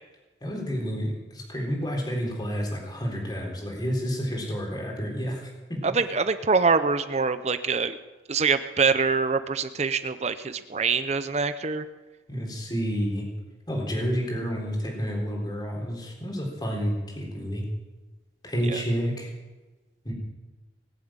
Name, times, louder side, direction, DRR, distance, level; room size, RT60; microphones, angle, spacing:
voice 1, 0.4-5.4 5.7-5.8 12.3-13.2 13.7-17.6 18.4-19.3 20.0-20.1, equal, 25° left, -1 dB, 3.7 m, -29 dB
voice 2, 5.8-8.0 8.3-11.8 18.6-18.8, right 4 dB, 35° right, 11 dB, 0.6 m, -24 dB
20.0 x 7.7 x 8.8 m, 1.2 s
head